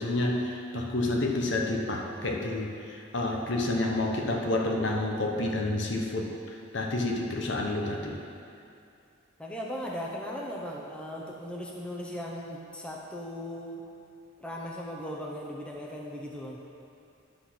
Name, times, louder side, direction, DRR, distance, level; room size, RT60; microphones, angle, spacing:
voice 1, 0.0-6.3 6.7-8.2, left 2 dB, 60° left, 1 dB, 0.9 m, -29 dB
voice 2, 9.4-13.8 14.4-16.6, equal, 5° left, -3 dB, 0.7 m, -38 dB
10.5 x 4.1 x 6.2 m, 2.5 s
head